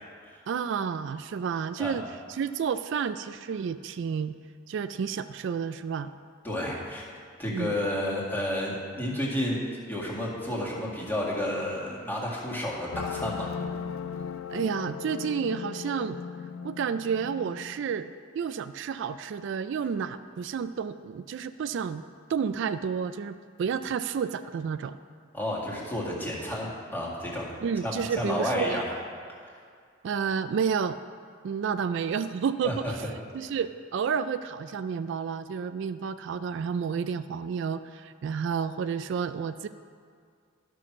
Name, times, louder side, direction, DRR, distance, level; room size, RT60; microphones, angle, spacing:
voice 1, 0.5-4.3 4.7-6.1 7.5-7.7 14.5-16.2 16.6-18.1 18.4-22.0 22.3-25.0 27.6-28.8 30.0-31.0 31.4-33.0 33.3-39.7, right 6 dB, 65° right, 12 dB, 0.3 m, -30 dB
voice 2, 6.4-7.1 7.4-9.6 9.9-13.5 25.3-27.5 27.8-28.8 32.6-32.9, left 1 dB, 10° left, -5 dB, 2.0 m, -31 dB
sound 1, 12.9-18.1, left 6 dB, 80° left, 0.4 m, -37 dB
12.5 x 6.3 x 6.1 m, 2.2 s
head